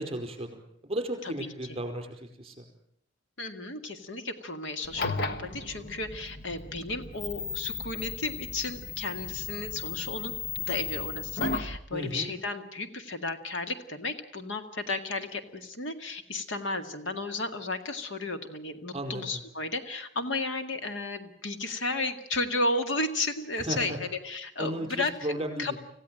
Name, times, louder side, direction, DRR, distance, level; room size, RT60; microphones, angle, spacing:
voice 1, 0.0-2.6 11.9-12.3 18.9-19.4 23.5-24.0 24.6-25.8, right 1 dB, 30° right, 4 dB, 4.8 m, -35 dB
voice 2, 1.4-1.8 3.4-25.3 25.6-25.8, left 2 dB, 80° left, 8 dB, 2.0 m, -33 dB
sound 1, 4.8-11.8, left 4 dB, 55° left, 1.4 m, -35 dB
26.0 x 16.0 x 8.9 m, 0.71 s
head